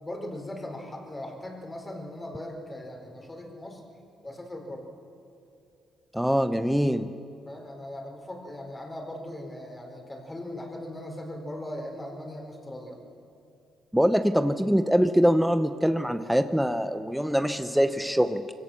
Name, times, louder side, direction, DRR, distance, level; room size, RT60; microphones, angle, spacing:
voice 1, 0.0-3.8 4.2-4.8 7.4-13.0, left 1 dB, 20° left, 2 dB, 4.2 m, -39 dB
voice 2, 6.1-7.1 13.9-18.5, equal, ahead, 9 dB, 0.7 m, -23 dB
23.0 x 17.0 x 7.1 m, 2.6 s
cardioid pair, 90°, 0 cm